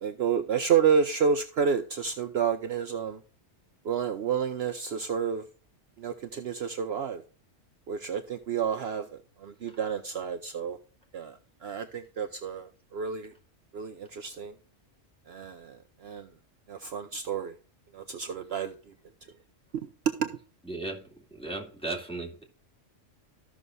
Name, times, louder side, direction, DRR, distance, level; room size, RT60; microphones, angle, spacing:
voice 1, 0.0-3.2 3.8-5.5 6.0-7.2 7.9-10.8 11.1-13.3 13.7-14.6 15.3-16.3 16.7-17.6 17.9-18.9 19.7-20.3, right 7 dB, 60° right, 0.9 m, -30 dB
voice 2, 20.7-21.1 21.4-22.4, right 2 dB, 5° left, 2.4 m, -35 dB
14.0 x 6.2 x 2.6 m
omnidirectional pair, 1.3 m